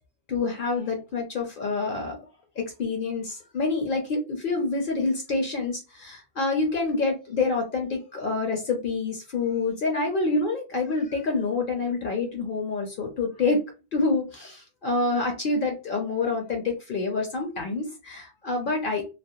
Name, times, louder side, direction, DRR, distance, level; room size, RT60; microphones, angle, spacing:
voice 1, 0.3-2.2 2.6-13.6 13.9-19.1, left 3 dB, 55° left, 2 dB, 0.7 m, -27 dB
2.4 x 2.0 x 2.6 m, 0.29 s
omnidirectional pair, 1.1 m